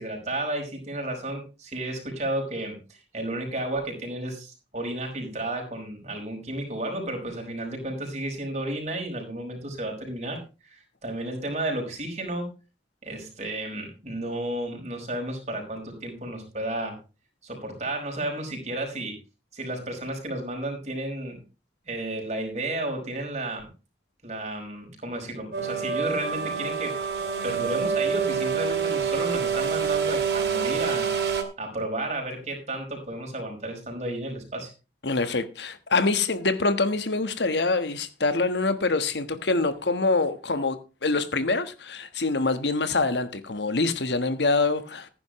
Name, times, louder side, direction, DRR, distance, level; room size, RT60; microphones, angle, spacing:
voice 1, 0.0-12.5 13.0-17.0 17.4-19.2 19.5-21.4 21.8-23.7 24.2-27.0 27.4-31.1 31.6-34.7, right 1 dB, 40° right, 5.1 m, -32 dB
sound 1, 25.5-31.4, right 6 dB, 70° right, 2.5 m, -27 dB
voice 2, 35.0-45.1, left 3 dB, 80° left, 1.4 m, -25 dB
15.0 x 10.5 x 3.1 m
head